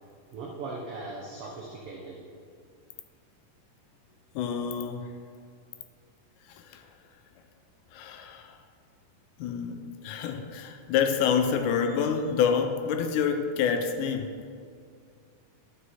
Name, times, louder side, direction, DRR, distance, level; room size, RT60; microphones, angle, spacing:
voice 1, 0.3-2.2 10.3-10.5, right 3 dB, 80° right, -1 dB, 1.3 m, -39 dB
voice 2, 4.4-5.1 6.6-6.8 7.9-8.6 9.4-14.3, left 7 dB, 80° left, 6 dB, 2.0 m, -27 dB
11.0 x 6.2 x 4.1 m, 2.2 s
omnidirectional pair, 3.7 m